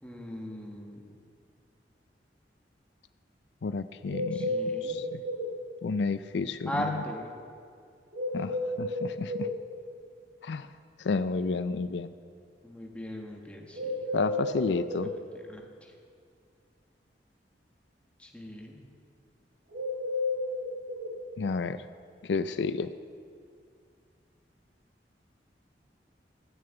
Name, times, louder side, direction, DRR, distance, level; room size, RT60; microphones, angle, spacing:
voice 1, 0.0-1.0 4.3-5.0 6.7-7.3 12.6-13.9 15.5-15.9 18.2-18.8, equal, 5° left, 0 dB, 1.6 m, -38 dB
voice 2, 3.6-4.5 4.8-5.2 5.8-6.7 8.3-9.5 10.4-10.7 11.0-12.1 14.1-15.1 21.4-21.8 22.3-22.9, left 4 dB, 75° left, 11 dB, 0.4 m, -31 dB
sound 1, 4.1-5.5 8.1-9.5 13.7-15.1 19.7-21.1, left 1 dB, 85° right, 3.9 m, -32 dB
14.5 x 6.8 x 9.0 m, 2.3 s
head